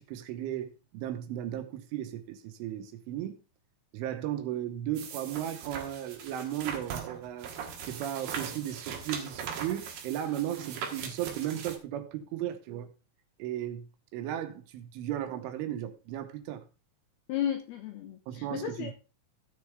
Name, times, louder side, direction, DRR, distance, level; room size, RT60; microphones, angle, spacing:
voice 1, 0.0-3.4 3.9-7.5 7.8-12.9 13.4-16.7 18.3-18.9, right 11 dB, 80° right, 3.5 m, -35 dB
sound 1, 4.9-11.8, right 7 dB, 60° right, 2.7 m, -40 dB
voice 2, 17.3-18.9, left 10 dB, 75° left, 2.3 m, -34 dB
16.0 x 6.6 x 3.5 m
omnidirectional pair, 5.6 m